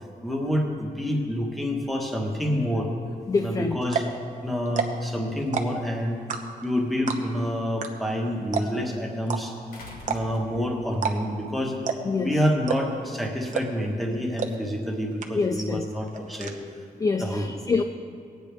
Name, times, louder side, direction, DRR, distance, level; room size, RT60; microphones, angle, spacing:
voice 1, 0.2-2.9 3.4-4.1 4.4-6.2 6.6-9.5 10.1-11.7 12.2-16.5 17.2-17.5, equal, ahead, 0 dB, 1.3 m, -27 dB
voice 2, 3.3-3.8 12.0-12.3 15.3-15.8 17.0-17.8, left 4 dB, 25° left, 7 dB, 0.3 m, -25 dB
sound 1, 3.4-3.5 3.8-4.2 4.7-5.1 5.4-5.9 6.3-6.7 7.1-7.4 7.8-7.9 8.1-8.2 8.5-8.9 9.3-9.4 10.0-10.5 10.9-11.2 11.4-11.5 11.9-12.2 12.7-13.0 13.5-13.9 14.4-14.5 14.8-14.9 15.2-15.6 15.9-16.5, right 6 dB, 55° right, 0.9 m, -28 dB
sound 2, 9.7-11.0 12.4-12.5, left 2 dB, 80° left, 1.7 m, -44 dB
19.0 x 9.3 x 3.5 m, 2.4 s
wide cardioid pair, 165°, 15 cm